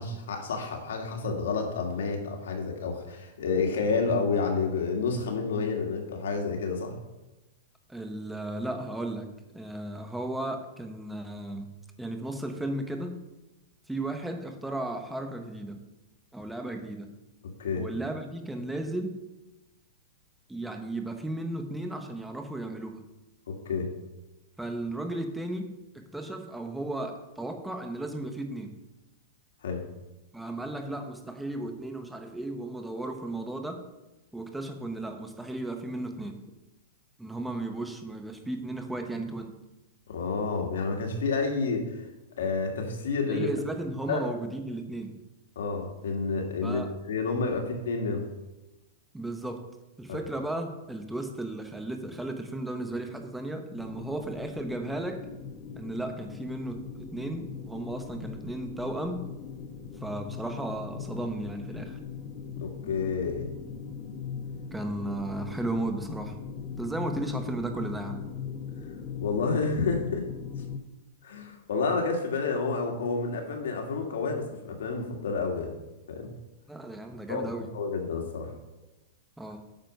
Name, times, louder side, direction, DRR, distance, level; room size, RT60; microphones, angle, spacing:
voice 1, 0.0-7.0 17.4-17.9 23.5-23.9 29.6-29.9 40.1-42.0 42.4-43.5 44.1-44.2 45.6-46.8 47.1-48.2 50.1-50.2 62.6-63.5 69.2-70.3 71.2-75.7 76.1-76.3 77.3-78.5, left 4 dB, 75° left, 2 dB, 2.3 m, -29 dB
voice 2, 7.9-13.2 13.9-15.8 16.3-17.1 17.8-19.2 20.5-23.0 24.6-28.7 30.3-33.9 34.3-36.4 37.2-39.5 43.3-45.2 46.6-46.9 49.1-49.7 50.0-55.3 55.7-59.3 60.0-62.0 64.7-66.4 66.8-68.2 76.7-77.7 79.4-79.6, right 1 dB, 5° right, 4 dB, 1.0 m, -35 dB
sound 1, 53.7-70.8, left 6 dB, 25° left, 0.9 m, -40 dB
9.1 x 6.2 x 5.4 m, 1.0 s
hypercardioid pair, 155°, 0 cm